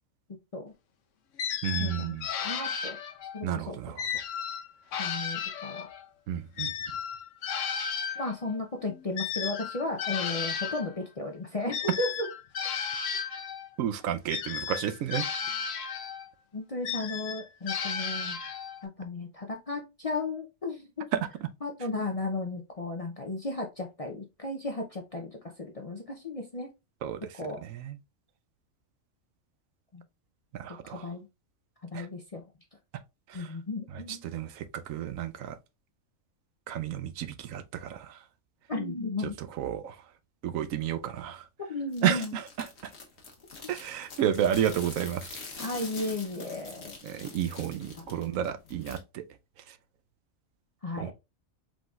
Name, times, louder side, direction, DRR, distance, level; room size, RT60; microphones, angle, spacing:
voice 1, 0.3-0.7 1.8-3.0 3.3-3.8 5.0-5.9 8.2-12.3 16.5-18.4 18.8-21.1 21.6-26.7 27.4-27.6 29.9-30.0 30.8-31.3 31.9-32.4 33.3-34.2 38.7-39.4 41.7-42.3 45.6-47.0 50.8-51.1, left 2 dB, 40° left, 0.5 m, -35 dB
sound 1, 1.4-3.4 4.0-6.1 6.6-10.9 11.7-13.7 14.3-16.3 16.8-18.8, left 7 dB, 70° left, 1.0 m, -34 dB
voice 2, 1.6-2.3 3.4-4.1 6.3-6.7 13.8-15.3 21.1-21.5 27.0-28.0 30.5-31.1 31.9-32.1 33.3-33.5 33.9-35.6 36.7-38.2 39.2-40.0 40.4-41.5 42.0-42.9 43.7-45.7 47.0-49.2 49.7-49.8 51.0-51.1, right 10 dB, 80° right, 1.0 m, -32 dB
sound 2, 41.9-49.0, left 4 dB, 55° left, 1.3 m, -45 dB
4.9 x 3.9 x 2.3 m
omnidirectional pair, 1.4 m